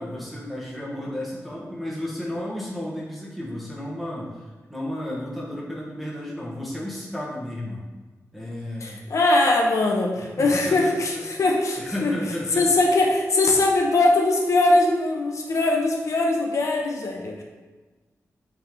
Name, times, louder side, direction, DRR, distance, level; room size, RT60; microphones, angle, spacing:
voice 1, 0.0-7.8 8.3-9.0 10.2-10.9 11.8-12.6, left 1 dB, ahead, -6 dB, 1.2 m, -33 dB
voice 2, 8.8-12.1 12.6-17.4, left 2 dB, 60° left, 0 dB, 0.9 m, -21 dB
8.8 x 3.6 x 3.7 m, 1.3 s
wide cardioid pair, 170°, 6 cm